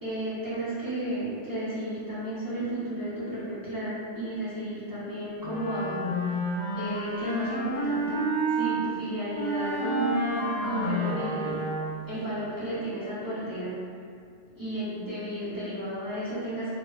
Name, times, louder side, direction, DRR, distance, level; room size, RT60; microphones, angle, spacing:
voice 1, 0.0-6.1 6.8-11.6 12.1-13.7 14.5-16.7, right 1 dB, 25° right, -11 dB, 0.5 m, -33 dB
Wind instrument woodwind instrument, 5.4-8.7 9.3-12.1, right 1 dB, 50° left, 1.0 m, -29 dB
2.6 x 2.2 x 2.2 m, 2.3 s
omnidirectional pair, 1.2 m